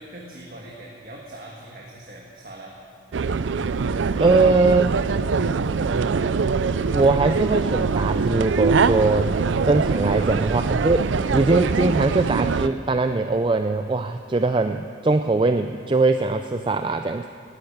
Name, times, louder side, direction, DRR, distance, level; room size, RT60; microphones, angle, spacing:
voice 1, 0.0-2.8 9.9-10.5, right 1 dB, 50° right, -2 dB, 1.6 m, -41 dB
sound 1, 3.1-12.7, right 5 dB, 85° right, 0.5 m, -23 dB
voice 2, 4.2-5.1 6.9-9.3 9.6-17.3, right 3 dB, 25° right, 8 dB, 0.3 m, -21 dB
13.0 x 10.5 x 8.7 m, 2.2 s
head